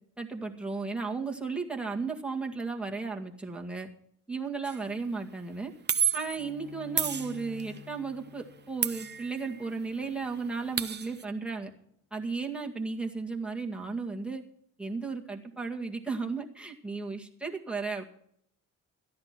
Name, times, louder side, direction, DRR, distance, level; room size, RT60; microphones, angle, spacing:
voice 1, 0.2-3.9 4.3-5.7 6.1-11.7 12.1-14.4 14.8-18.0, right 4 dB, 5° right, 0 dB, 2.0 m, -34 dB
sound 1, 4.6-4.9 5.9-6.4 7.0-7.8 8.8-9.7 10.0-10.1 10.3-11.2, right 8 dB, 35° right, 0.8 m, -31 dB
Bowed string instrument, 6.3-11.7, left 8 dB, 85° left, 1.3 m, -51 dB
13.5 x 10.5 x 5.9 m, 0.68 s
cardioid pair, 90°, 32 cm